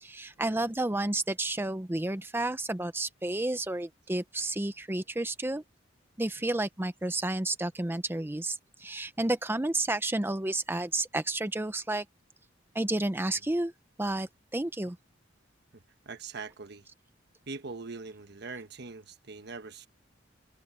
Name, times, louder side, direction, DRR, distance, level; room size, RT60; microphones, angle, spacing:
voice 1, 0.0-5.6 6.2-12.0 12.7-13.7 14.0-15.0, right 2 dB, 10° right, 0.6 m, -31 dB
voice 2, 15.7-16.9 17.5-19.9, right 4 dB, 60° right, 1.2 m, -42 dB
head